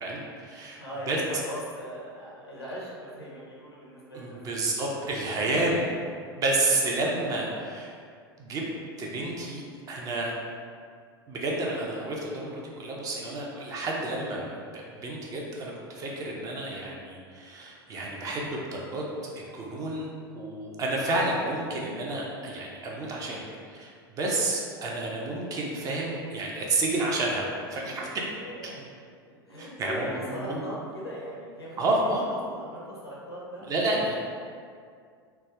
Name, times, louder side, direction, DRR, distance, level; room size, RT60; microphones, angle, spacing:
voice 1, 0.0-1.2 4.1-5.9 6.3-8.0 8.4-8.6 9.0-10.3 11.3-19.1 19.5-20.1 20.3-23.4 23.7-23.9 24.2-28.1 29.6-30.6 31.8-32.4 33.7-34.2, right 2 dB, 30° right, -2 dB, 0.5 m, -30 dB
voice 2, 0.8-4.5 6.6-6.9 28.4-28.8 29.3-31.8 32.2-33.6, equal, 85° left, -5 dB, 0.7 m, -40 dB
3.3 x 2.1 x 2.3 m, 2.2 s
figure-of-eight pair, 85°, 13 cm